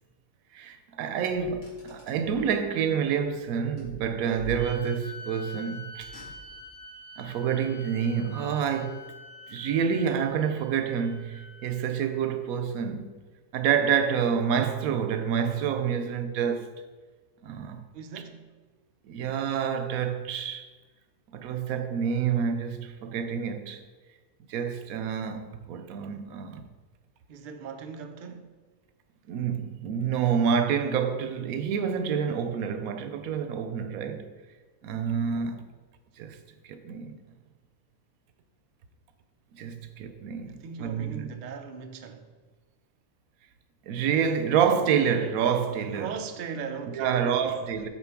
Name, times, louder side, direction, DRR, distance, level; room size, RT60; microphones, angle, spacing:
voice 1, 0.5-6.1 7.2-9.1 9.5-13.2 13.5-16.7 17.4-17.8 19.0-20.7 21.3-23.8 24.5-26.7 29.3-34.3 34.8-35.7 36.2-36.4 36.6-37.2 39.5-41.3 43.8-46.2 46.9-47.9, right 7 dB, 80° right, 1.1 m, -28 dB
Car, 1.3-2.5 3.8-5.1 5.9-6.8, equal, 60° left, 2.2 m, -46 dB
sound 1, 4.6-12.1, left 2 dB, 10° left, 1.7 m, -46 dB
voice 2, 17.9-18.5 27.3-28.6 40.5-42.3 45.9-47.7, right 6 dB, 60° right, 0.5 m, -39 dB
7.0 x 4.9 x 4.5 m
omnidirectional pair, 1.5 m